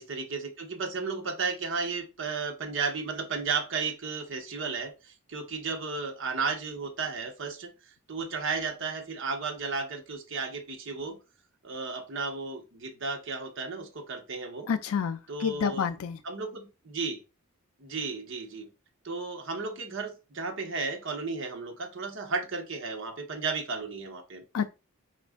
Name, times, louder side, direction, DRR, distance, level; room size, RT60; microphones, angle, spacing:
voice 1, 0.0-7.7 8.1-11.2 11.6-14.7 15.3-15.9 16.2-17.2 17.8-18.7 19.0-24.4, right 4 dB, 60° right, 0.9 m, -34 dB
voice 2, 14.7-16.2 24.5-24.7, left 7 dB, 85° left, 0.4 m, -29 dB
5.1 x 2.4 x 3.5 m
head